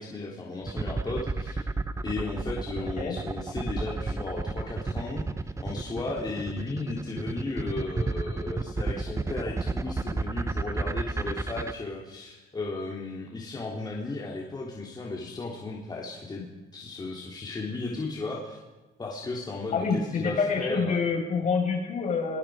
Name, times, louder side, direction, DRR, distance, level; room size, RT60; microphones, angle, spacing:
voice 1, 0.0-1.6 2.0-16.5 16.7-18.6 19.0-21.0, left 3 dB, 25° left, -3 dB, 3.6 m, -35 dB
sound 1, 0.7-11.7, right 3 dB, 15° right, 0.9 m, -31 dB
voice 2, 19.7-22.4, left 5 dB, 45° left, 3 dB, 5.9 m, -27 dB
29.5 x 20.5 x 5.1 m, 1.1 s
cardioid pair, 110°, 17 cm